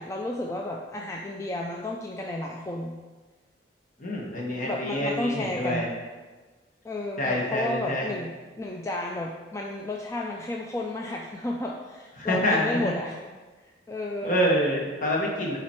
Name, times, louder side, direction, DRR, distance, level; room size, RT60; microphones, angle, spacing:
voice 1, 0.0-2.9 4.6-5.9 6.8-13.2 13.9-14.4, left 1 dB, 15° left, -1 dB, 0.4 m, -32 dB
voice 2, 4.0-5.9 7.2-8.1 12.2-12.9 14.2-15.6, equal, 50° left, -2 dB, 1.5 m, -26 dB
7.3 x 3.9 x 4.5 m, 1.3 s
head